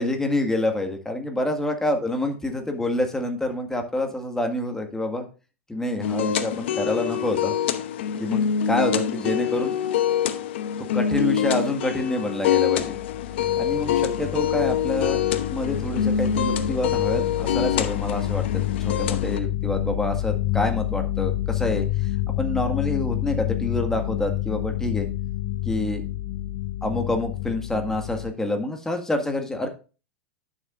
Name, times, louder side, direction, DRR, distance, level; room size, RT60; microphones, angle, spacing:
voice 1, 0.0-5.3 5.7-7.5 8.2-9.8 10.9-13.0 13.6-15.2 15.5-18.4 18.8-22.1 22.4-25.1 25.7-26.0 26.8-29.7, left 1 dB, 5° left, 4 dB, 1.8 m, -27 dB
sound 1, 6.0-19.4, left 8 dB, 60° left, 0.8 m, -25 dB
sound 2, 12.8-28.3, left 14 dB, 45° left, 0.5 m, -28 dB
11.5 x 7.1 x 2.5 m, 0.33 s
figure-of-eight pair, 95°, 7 cm